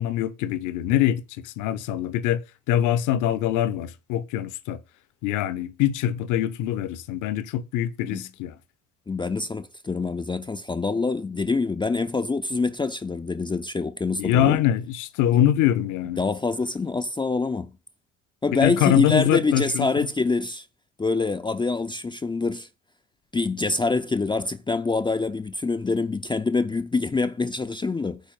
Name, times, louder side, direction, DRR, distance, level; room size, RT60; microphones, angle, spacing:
voice 1, 0.0-2.4 2.7-4.8 5.2-8.5 14.2-16.2 18.6-20.1, left 11 dB, 50° left, 1.1 m, -23 dB
voice 2, 9.1-14.6 16.2-17.7 18.4-20.6 21.0-22.7 23.3-28.2, left 3 dB, 10° left, 0.7 m, -25 dB
9.3 x 4.5 x 7.5 m
figure-of-eight pair, 55°, 38 cm